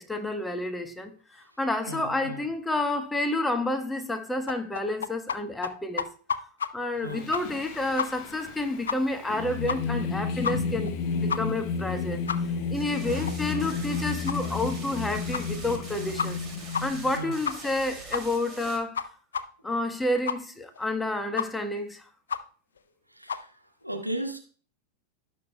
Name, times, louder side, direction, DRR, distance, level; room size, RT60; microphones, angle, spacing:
voice 1, 0.0-6.1 6.7-10.9 11.2-12.2 12.7-16.4 16.8-19.0 19.6-22.1, left 2 dB, 5° left, 1.1 m, -30 dB
voice 2, 1.9-2.4 6.9-7.3 13.0-13.8 17.2-17.4 23.1-24.4, equal, 90° right, 1.6 m, -37 dB
sound 1, 4.5-5.4 5.6-5.7 6.0-6.7 7.0-7.1 7.3-7.7 8.0-8.1 8.4-8.5 8.9-9.0 9.3-9.4 9.7-10.0 10.4-10.5 10.9-11.0 11.3-11.4 11.8-11.9 12.3-12.4 12.8-12.9 13.3-13.4 13.7-13.8 14.3-14.4 14.8-14.9 15.3-15.4 15.8-15.9 16.2-16.5 16.7-16.8 17.1-17.2 17.4-17.8 18.1-18.2 18.6-18.7 18.9-19.0 19.3-19.4 19.7-19.8 20.3-20.4 20.7-20.8 21.4-21.5 21.8-21.9 22.3-22.4 22.8-22.9 23.3-23.4, left 6 dB, 70° left, 0.6 m, -29 dB
Singing, 7.1-17.6, left 5 dB, 40° left, 0.8 m, -32 dB
sound 2, 12.7-18.8, right 3 dB, 25° right, 2.5 m, -44 dB
17.0 x 6.3 x 2.2 m
figure-of-eight pair, 90°, 0 cm